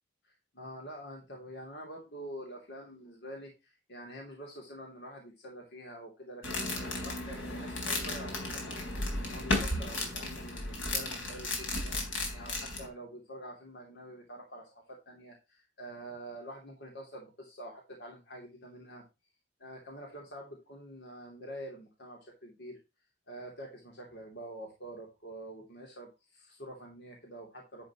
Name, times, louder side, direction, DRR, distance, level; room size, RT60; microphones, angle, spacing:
voice 1, 0.2-8.8 9.2-11.9 12.3-19.0 19.6-22.8 23.3-27.9, right 1 dB, 60° left, 0 dB, 3.1 m, -46 dB
sound 1, 6.4-12.9, left 2 dB, 85° left, 3.8 m, -34 dB
11.0 x 7.7 x 3.1 m, 0.25 s
head